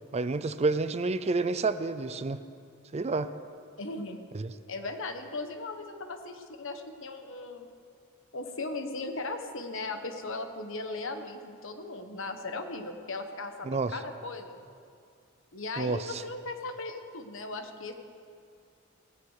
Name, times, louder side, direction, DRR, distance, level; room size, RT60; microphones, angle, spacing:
voice 1, 0.1-2.4 2.9-3.3 4.3-4.5 13.7-13.9 15.8-16.2, right 3 dB, 30° right, 12 dB, 0.5 m, -29 dB
voice 2, 3.8-4.2 4.7-7.7 8.3-14.6 15.5-17.9, left 2 dB, 65° left, 7 dB, 1.3 m, -37 dB
17.0 x 16.0 x 4.9 m, 2.4 s
head